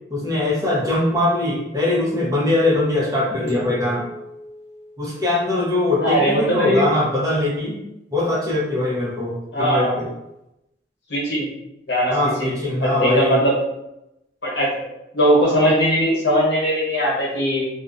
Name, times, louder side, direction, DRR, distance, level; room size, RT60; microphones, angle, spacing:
voice 1, 0.1-4.1 5.0-7.8 8.1-10.1 12.1-13.4, left 2 dB, 20° right, -5 dB, 0.6 m, -21 dB
sound 1, 3.5-5.9, equal, 45° right, 1.1 m, -38 dB
voice 2, 6.0-6.8 9.5-9.9 11.1-11.5 11.9-12.5 12.8-13.6 14.4-14.9 15.1-17.6, equal, 80° left, -5 dB, 1.0 m, -19 dB
2.4 x 2.0 x 2.5 m, 0.88 s
head